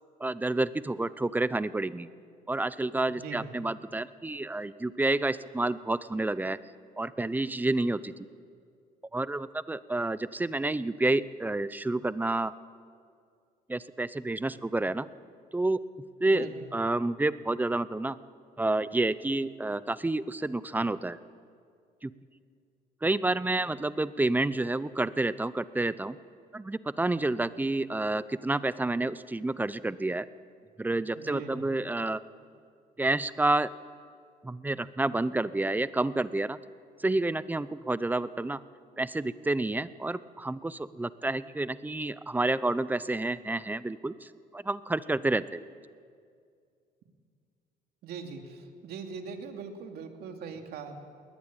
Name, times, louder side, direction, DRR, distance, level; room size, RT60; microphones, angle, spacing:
voice 1, 0.2-2.1 2.5-6.6 7.0-8.1 9.1-12.5 13.7-15.1 15.5-15.8 16.2-18.2 18.6-21.2 22.0-22.1 23.0-26.2 26.5-30.3 30.8-32.2 33.0-33.7 34.4-36.6 37.0-38.6 39.0-45.6, right 2 dB, 10° right, 16 dB, 0.7 m, -29 dB
voice 2, 3.1-3.5 16.2-16.6 31.2-31.7 48.0-51.1, right 5 dB, 70° right, 4 dB, 2.8 m, -41 dB
20.0 x 19.5 x 9.1 m, 2.2 s
cardioid pair, 110°, 17 cm